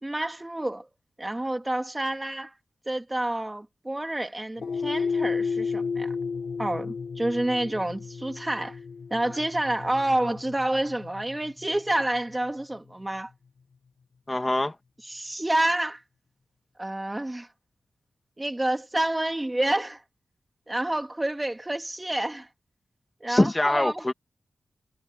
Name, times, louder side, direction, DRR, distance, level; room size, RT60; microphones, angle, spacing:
voice 1, 0.0-0.9 1.2-2.5 2.9-6.1 6.6-8.8 9.1-13.3 15.1-16.0 16.8-17.5 18.4-20.0 20.7-22.5 23.2-24.0, right 1 dB, 20° right, 2.7 m, -28 dB
sound 1, 4.6-13.0, left 5 dB, 70° left, 4.5 m, -33 dB
voice 2, 14.3-14.8 23.3-24.1, left 1 dB, 20° left, 2.0 m, -23 dB
cardioid pair, 70°, 0 cm